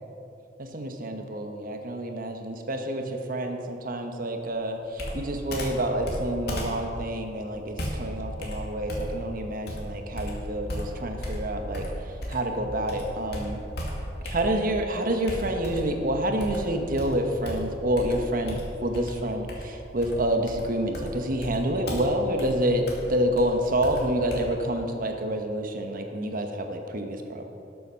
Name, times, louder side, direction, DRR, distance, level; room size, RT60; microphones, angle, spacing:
voice 1, 0.6-11.8 12.3-13.6 14.2-27.5, right 1 dB, 50° right, 5 dB, 1.1 m, -28 dB
Computer keyboard, 5.0-12.6 12.9-14.8 15.3-16.0 16.4-24.4, equal, 65° left, 2.3 m, -35 dB
12.5 x 7.2 x 6.3 m, 2.7 s
head